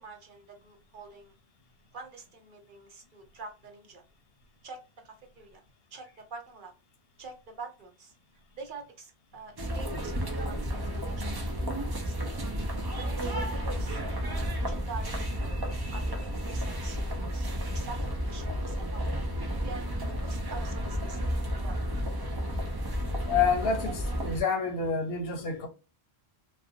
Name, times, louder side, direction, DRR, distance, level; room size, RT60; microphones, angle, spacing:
voice 1, 0.0-1.3 1.9-4.0 4.6-5.6 5.9-6.7 7.2-8.1 8.6-11.4 11.7-12.2 13.0-15.6 15.9-19.1 19.6-19.8 20.2-21.2 21.5-21.8, right 4 dB, 55° right, 0.7 m, -46 dB
sound 1, 9.6-24.4, equal, 35° right, 0.3 m, -32 dB
voice 2, 23.3-23.9 24.2-25.7, left 5 dB, 70° left, 0.8 m, -27 dB
2.5 x 2.4 x 2.6 m
omnidirectional pair, 1.1 m